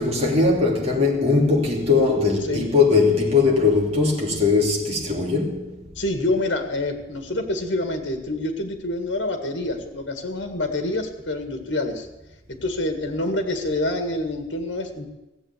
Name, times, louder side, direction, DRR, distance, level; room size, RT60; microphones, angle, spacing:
voice 1, 0.0-5.8, left 4 dB, 35° right, 3.2 m, -20 dB
voice 2, 6.0-12.1 12.6-15.1, left 2 dB, 80° left, 1.9 m, -27 dB
16.0 x 7.8 x 8.3 m
head